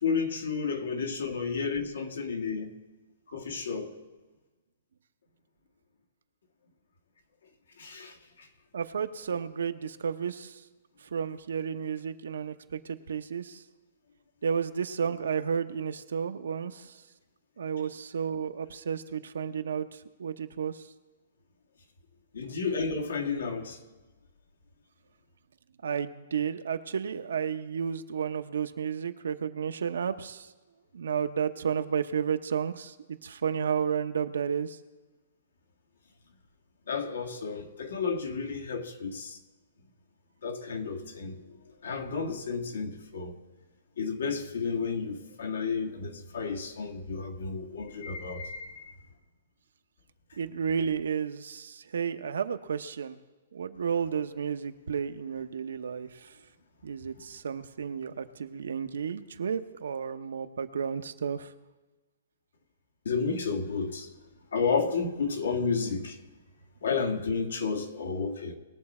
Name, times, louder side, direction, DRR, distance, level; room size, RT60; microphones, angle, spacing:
voice 1, 0.0-2.7 3.3-3.9 7.8-8.5 22.3-23.8 36.9-39.4 40.4-41.4 41.8-43.4 44.0-48.9 63.1-64.1 64.5-66.2 66.8-68.5, left 5 dB, 90° left, 1.8 m, -31 dB
voice 2, 8.7-10.6 11.1-13.6 14.4-17.0 17.6-20.9 25.8-30.5 30.9-32.9 33.2-34.8 50.4-53.2 53.5-56.4 56.8-61.5, right 7 dB, 85° right, 0.8 m, -32 dB
20.5 x 7.0 x 4.3 m
hypercardioid pair, 170°, 0 cm